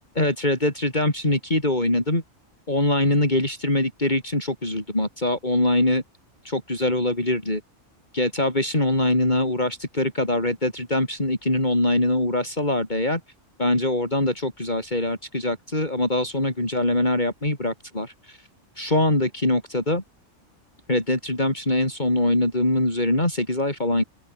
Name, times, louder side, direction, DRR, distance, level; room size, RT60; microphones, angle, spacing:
voice 1, 0.2-2.2 2.7-6.0 6.4-7.6 8.1-13.2 13.6-18.4 18.8-20.0 20.9-24.0, left 1 dB, 35° left, 5.2 m, -23 dB
open air
omnidirectional pair, 1.4 m